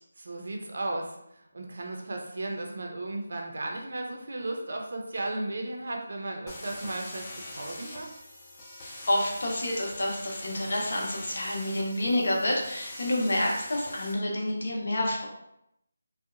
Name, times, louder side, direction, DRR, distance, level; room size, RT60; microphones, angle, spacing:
voice 1, 0.2-1.2 1.5-8.1, right 2 dB, 60° right, 1 dB, 0.4 m, -35 dB
sound 1, 6.5-14.1, left 1 dB, 20° left, 0.4 m, -43 dB
voice 2, 9.1-15.3, left 1 dB, 60° left, -2 dB, 0.7 m, -28 dB
2.7 x 2.0 x 2.4 m, 0.80 s
figure-of-eight pair, 170°, 0 cm